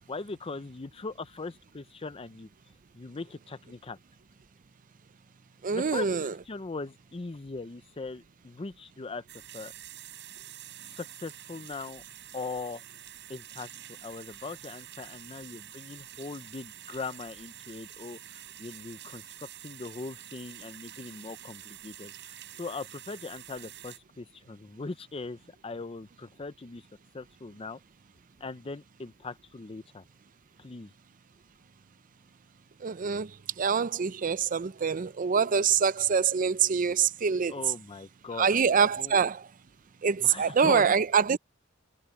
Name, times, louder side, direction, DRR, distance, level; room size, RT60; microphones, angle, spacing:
voice 1, 0.1-2.5 2.9-4.0 5.7-9.2 9.5-9.7 11.0-12.0 12.3-12.8 13.3-13.7 14.0-26.9 27.1-27.8 28.4-30.0 30.6-30.9 37.5-38.5 39.0-39.2 40.2-41.0, left 3 dB, 30° left, 0.5 m, -40 dB
voice 2, 5.6-6.3 32.8-33.3 33.6-37.5 38.4-39.5 40.0-41.4, right 6 dB, 40° right, 0.5 m, -25 dB
sound 1, 9.3-24.0, right 12 dB, 60° right, 6.8 m, -47 dB
head